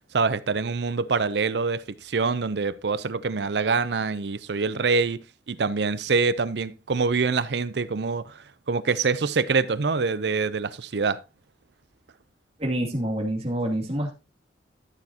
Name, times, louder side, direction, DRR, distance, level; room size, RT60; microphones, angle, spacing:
voice 1, 0.1-11.2, right 4 dB, 70° right, 0.6 m, -25 dB
voice 2, 12.6-14.1, right 1 dB, 35° right, 2.6 m, -27 dB
13.0 x 7.0 x 2.9 m
head